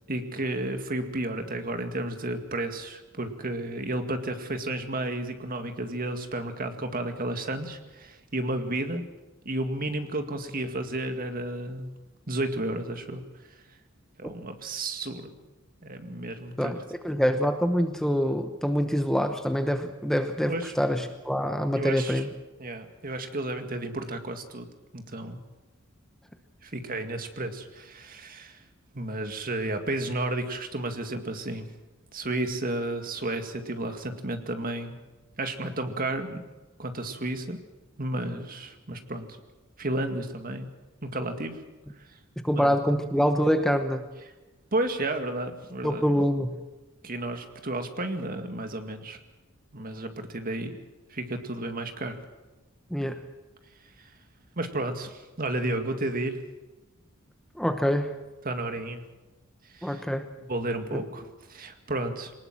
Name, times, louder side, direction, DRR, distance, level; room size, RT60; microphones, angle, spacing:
voice 1, 0.1-9.0 9.5-11.9 12.3-13.2 14.2-15.4 15.8-16.8 20.4-20.7 21.7-22.2 22.6-24.7 24.9-25.4 26.6-28.6 28.9-31.7 32.1-34.9 35.4-36.4 36.8-37.6 38.0-39.3 39.8-40.7 41.0-41.6 42.4-42.8 44.7-46.0 47.0-49.2 49.7-50.8 51.1-52.2 54.0-54.1 54.6-56.4 58.4-59.0 59.7-60.0 60.4-62.3, right 2 dB, 45° right, 6 dB, 2.1 m, -32 dB
voice 2, 16.6-22.3 42.4-44.1 45.8-46.6 52.9-53.2 57.6-58.2 59.8-60.3 60.9-61.0, equal, ahead, 6 dB, 0.9 m, -25 dB
23.0 x 19.5 x 7.6 m, 1.1 s
head